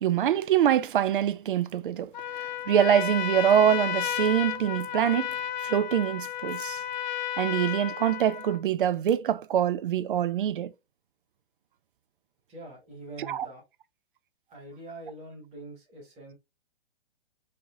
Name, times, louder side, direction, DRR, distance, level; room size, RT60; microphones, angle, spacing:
voice 1, 0.0-2.1 2.7-5.3 5.6-6.8 7.4-10.7 13.3-13.5, right 10 dB, 55° right, 0.4 m, -24 dB
Trumpet, 2.1-8.6, left 10 dB, 50° left, 0.4 m, -33 dB
voice 2, 12.5-13.6 14.5-16.3, right 2 dB, 20° right, 1.8 m, -44 dB
4.1 x 3.0 x 2.4 m
figure-of-eight pair, 125°, 31 cm